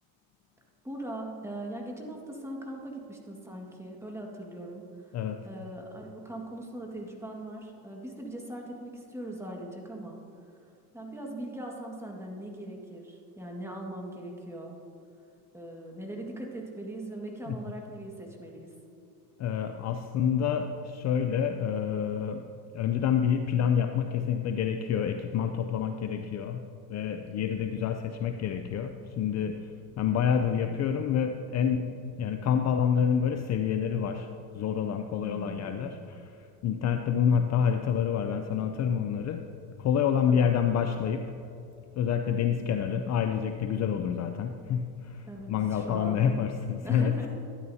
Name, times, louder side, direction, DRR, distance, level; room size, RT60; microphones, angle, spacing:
voice 1, 0.8-10.2 10.6-14.8 15.5-18.7 35.2-35.9 40.3-40.5 45.3-46.3 46.8-47.3, right 1 dB, 5° right, 0 dB, 1.8 m, -40 dB
voice 2, 19.4-22.4 22.7-26.6 26.9-29.7 30.0-31.9 32.2-34.3 34.5-36.4 36.6-39.4 39.8-41.2 42.0-47.1, left 8 dB, 40° left, 6 dB, 0.5 m, -28 dB
12.5 x 10.5 x 2.8 m, 2.7 s
supercardioid pair, 105°, 42 cm